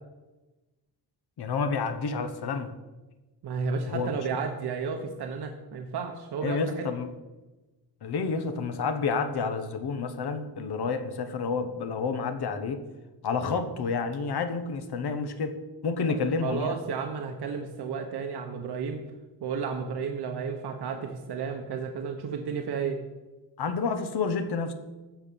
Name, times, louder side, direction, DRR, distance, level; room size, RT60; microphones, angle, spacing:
voice 1, 1.4-2.7 3.9-4.1 6.4-7.1 8.0-12.8 13.2-15.6 15.8-16.8 23.6-24.7, left 4 dB, 80° left, 9 dB, 1.3 m, -29 dB
voice 2, 3.4-6.8 16.4-19.0 19.4-23.0, right 5 dB, 80° right, 4 dB, 1.2 m, -32 dB
14.5 x 6.0 x 7.0 m, 1.1 s
wide cardioid pair, 175°, 38 cm